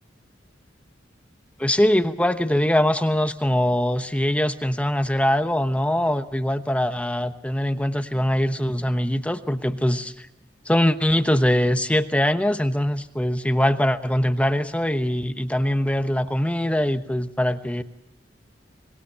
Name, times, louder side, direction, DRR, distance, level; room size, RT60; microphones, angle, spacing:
voice 1, 1.6-10.3 10.7-17.8, left 1 dB, 5° left, 9 dB, 1.0 m, -22 dB
25.0 x 21.5 x 5.7 m, 0.83 s
head